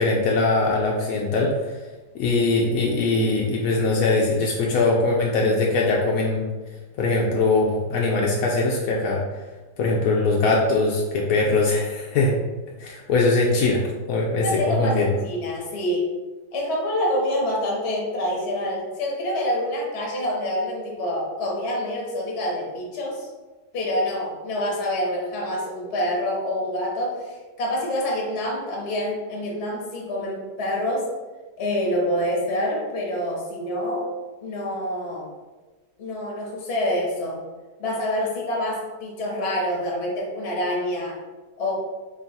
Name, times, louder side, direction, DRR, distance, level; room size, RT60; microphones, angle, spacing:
voice 1, 0.0-1.5 2.1-6.4 7.0-9.2 9.8-12.4 12.8-13.8 14.1-15.1, left 3 dB, 75° left, -2 dB, 0.8 m, -21 dB
voice 2, 14.4-16.1 16.5-23.3 23.7-31.1 31.6-34.1 34.4-35.3 36.0-37.4 37.8-41.2 41.6-41.7, left 1 dB, 45° left, -2 dB, 1.0 m, -26 dB
3.7 x 2.3 x 4.0 m, 1.2 s
omnidirectional pair, 1.9 m